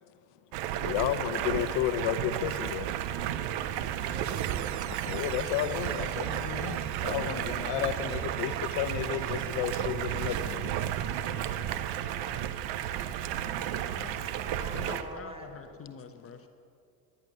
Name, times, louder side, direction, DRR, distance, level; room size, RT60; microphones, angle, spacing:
Stream, 0.5-15.0, right 11 dB, 65° right, 0.9 m, -33 dB
voice 1, 0.8-2.9 5.1-10.7, left 11 dB, 65° left, 11 dB, 0.8 m, -32 dB
sound 1, 3.3-10.6, right 11 dB, 40° right, 0.7 m, -42 dB
voice 2, 4.0-4.8 11.7-12.3 14.3-15.5, right 1 dB, 10° right, 5 dB, 1.8 m, -46 dB
voice 3, 13.3-14.2 14.7-16.5, left 7 dB, 30° left, 6 dB, 0.9 m, -47 dB
14.5 x 11.0 x 6.6 m, 2.5 s
supercardioid pair, 85°, 45 cm